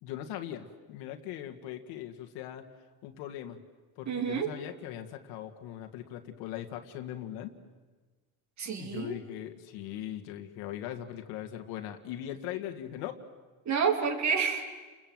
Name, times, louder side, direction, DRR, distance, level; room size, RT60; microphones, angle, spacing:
voice 1, 0.0-2.7 3.0-3.6 4.0-7.5 8.8-13.2, left 11 dB, 90° left, 5 dB, 2.0 m, -40 dB
voice 2, 4.1-4.5 8.6-9.2 13.6-14.7, right 6 dB, 45° right, 5 dB, 3.4 m, -29 dB
30.0 x 21.5 x 7.8 m, 1.3 s
cardioid pair, 100°, 38 cm